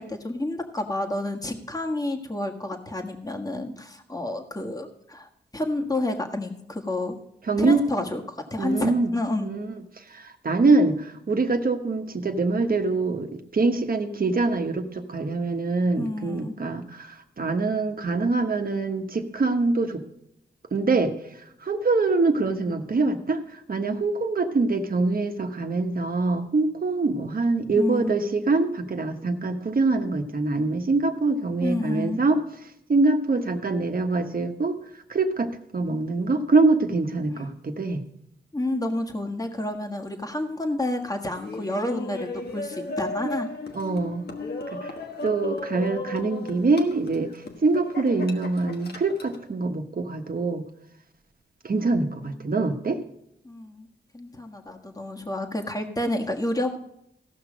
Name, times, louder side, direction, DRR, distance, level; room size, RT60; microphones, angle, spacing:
voice 1, 0.0-7.2 7.6-9.5 16.0-16.6 27.7-28.2 31.6-32.2 37.3-37.5 38.5-43.5 51.9-52.5 53.4-53.9 54.1-56.8, left 1 dB, 20° left, 3 dB, 1.5 m, -30 dB
voice 2, 7.5-7.8 8.6-9.1 9.4-9.7 10.1-20.0 20.7-21.1 21.6-32.4 32.9-34.8 35.1-38.0 43.7-44.3 44.7-44.9 45.2-47.3 47.6-50.6 51.6-53.0, right 3 dB, 50° right, 5 dB, 1.3 m, -24 dB
Laughter, 41.3-49.4, left 2 dB, 60° left, 1.3 m, -36 dB
16.0 x 6.0 x 5.1 m, 0.78 s
cardioid pair, 55°, 18 cm